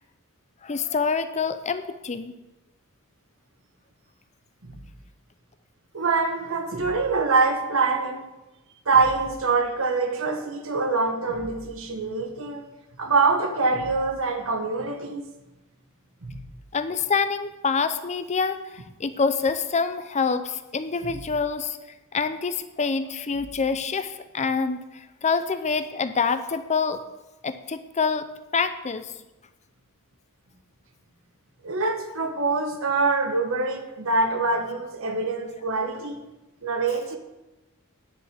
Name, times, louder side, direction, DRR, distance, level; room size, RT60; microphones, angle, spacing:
voice 1, 0.6-2.3 16.7-21.8 22.1-27.0 27.4-28.3 28.5-29.1, left 5 dB, 30° left, 10 dB, 0.6 m, -26 dB
voice 2, 5.9-8.3 8.8-12.6 13.0-15.3 16.2-16.4 21.0-21.2 31.6-36.2 36.6-37.2, right 4 dB, 65° right, 5 dB, 1.5 m, -24 dB
10.0 x 6.6 x 7.5 m, 1.0 s
head